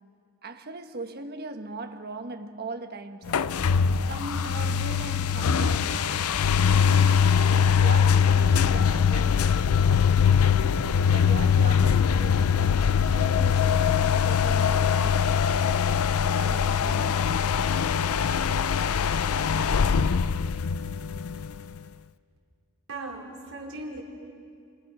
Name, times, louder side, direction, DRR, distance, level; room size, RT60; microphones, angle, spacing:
voice 1, 0.4-3.4 4.1-6.4 6.8-9.7 11.0-15.6 16.4-17.4, right 2 dB, 45° right, 1.3 m, -39 dB
sound 1, 3.3-21.8, left 7 dB, 75° left, 0.5 m, -22 dB
voice 2, 22.9-24.0, right 2 dB, 70° right, 4.5 m, -37 dB
29.5 x 25.5 x 6.1 m
head